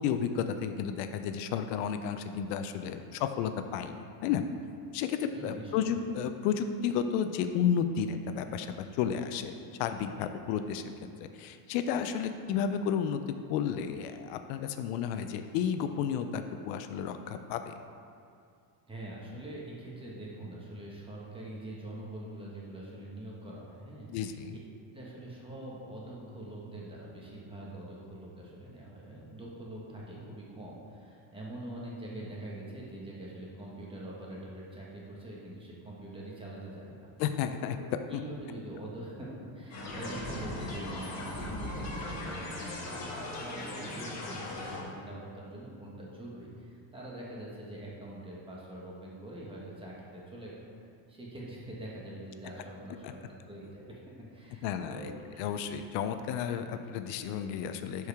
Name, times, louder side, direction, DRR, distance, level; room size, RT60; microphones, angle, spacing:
voice 1, 0.0-4.4 4.9-9.5 9.8-10.8 11.3-13.2 13.5-17.7 24.1-24.6 37.2-37.8 53.0-53.1 54.6-55.1 55.4-58.1, left 8 dB, 85° left, 8 dB, 0.7 m, -32 dB
voice 2, 5.3-5.9 18.9-24.4 24.9-37.1 37.7-50.7 51.1-54.0 54.3-55.5, right 1 dB, 10° right, -5 dB, 1.4 m, -44 dB
sound 1, 39.7-44.8, left 1 dB, 35° left, 1.6 m, -38 dB
11.5 x 4.8 x 3.5 m, 2.3 s
cardioid pair, 145°, 48 cm